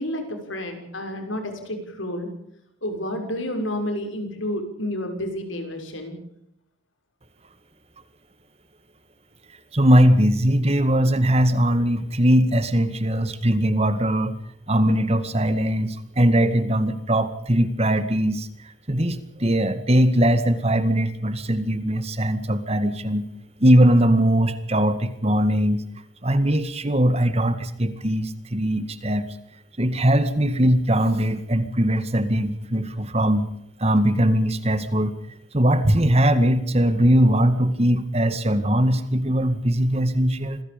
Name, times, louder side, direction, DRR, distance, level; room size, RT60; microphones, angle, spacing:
voice 1, 0.0-2.3 2.8-6.2, left 1 dB, 85° left, 5 dB, 6.3 m, -30 dB
voice 2, 9.7-14.3 14.7-18.5 18.9-23.3 23.6-25.8 26.2-29.3 29.8-33.5 33.8-35.1 35.5-40.6, equal, 30° right, 11 dB, 2.0 m, -20 dB
27.5 x 20.0 x 5.3 m, 0.77 s
head